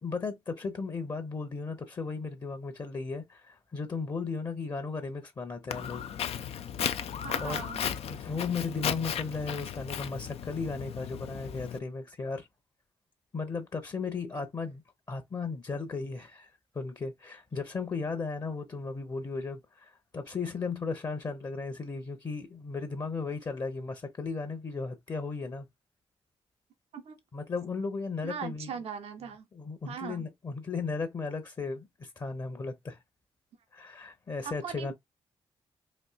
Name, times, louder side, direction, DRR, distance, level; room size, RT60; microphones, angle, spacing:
voice 1, 0.0-6.1 7.4-7.6 8.1-12.5 13.3-14.8 15.1-16.5 16.7-25.7 27.3-28.7 29.5-33.0 33.7-34.9, left 4 dB, 40° left, 0.9 m, -35 dB
Walk footsteps, 5.7-11.8, left 8 dB, 75° left, 0.4 m, -35 dB
voice 2, 7.2-7.8 14.3-14.4 26.9-27.2 28.2-29.5 29.8-30.3 34.4-34.9, right 7 dB, 85° right, 0.8 m, -40 dB
4.3 x 2.6 x 2.4 m
cardioid pair, 70°, 10 cm